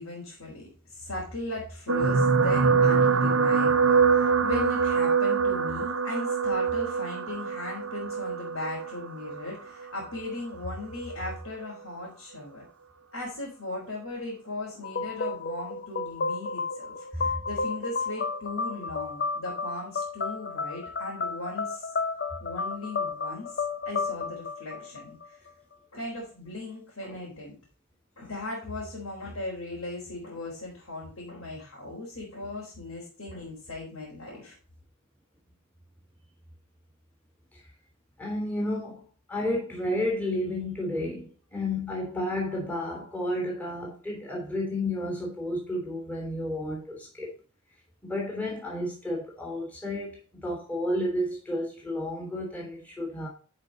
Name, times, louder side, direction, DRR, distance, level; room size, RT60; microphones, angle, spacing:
voice 1, 0.0-12.6 13.1-21.9 22.4-25.4 25.9-27.6 28.2-34.6, left 2 dB, 70° left, 4.0 m, -38 dB
sound 1, 1.9-10.3 11.1-11.3 11.6-11.7, right 5 dB, 70° right, 0.9 m, -24 dB
sound 2, 14.8-25.5, left 4 dB, 50° left, 0.7 m, -32 dB
voice 2, 38.2-39.0 39.3-47.3 48.0-53.3, left 1 dB, 5° left, 3.3 m, -31 dB
12.0 x 5.3 x 4.1 m
head